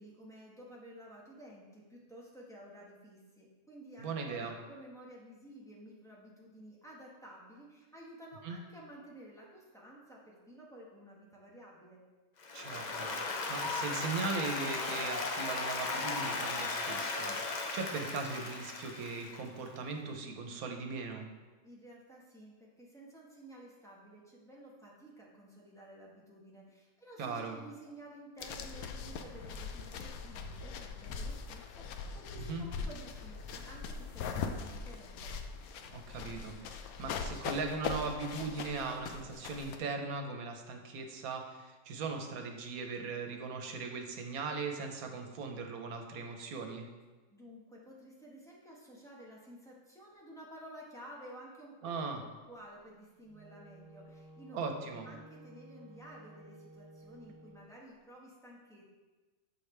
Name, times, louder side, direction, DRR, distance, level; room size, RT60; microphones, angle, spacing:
voice 1, 0.0-12.0 21.6-35.3 47.3-51.9 52.5-58.9, right 1 dB, ahead, -5 dB, 1.1 m, -53 dB
voice 2, 4.0-4.5 8.4-8.6 12.5-21.3 27.2-27.6 32.5-32.6 35.9-46.9 51.8-52.2 54.5-55.1, right 4 dB, 85° right, 4 dB, 1.2 m, -39 dB
Applause, 12.4-19.6, left 3 dB, 65° left, 0.4 m, -36 dB
sound 1, 28.4-39.8, left 5 dB, 90° left, 1.0 m, -41 dB
Wind instrument woodwind instrument, 53.2-57.7, right 1 dB, 70° right, 0.9 m, -55 dB
7.5 x 4.9 x 3.2 m, 1.3 s
omnidirectional pair, 1.5 m